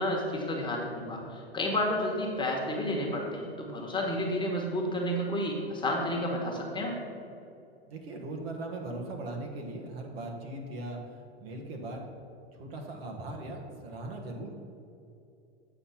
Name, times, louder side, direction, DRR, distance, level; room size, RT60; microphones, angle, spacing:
voice 1, 0.0-7.0, left 1 dB, 15° left, -1 dB, 1.3 m, -31 dB
voice 2, 7.9-11.0 11.4-12.1 12.5-14.5, right 2 dB, 65° right, 2 dB, 1.4 m, -39 dB
7.9 x 4.2 x 5.7 m, 2.6 s
hypercardioid pair, 105°, 33 cm